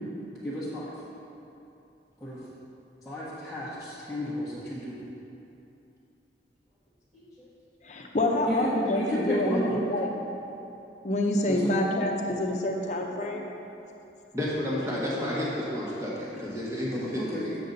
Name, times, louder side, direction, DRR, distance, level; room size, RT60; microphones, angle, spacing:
voice 1, 0.4-0.9 2.2-2.4 3.0-5.0 7.1-7.5 8.5-9.8 11.5-11.6 17.1-17.5, equal, ahead, -13 dB, 1.2 m, -32 dB
voice 2, 7.8-10.1 11.0-13.5, left 1 dB, 40° left, 1 dB, 0.8 m, -27 dB
voice 3, 14.3-17.6, left 1 dB, 15° right, -6 dB, 1.4 m, -31 dB
7.9 x 6.7 x 4.0 m, 2.9 s
head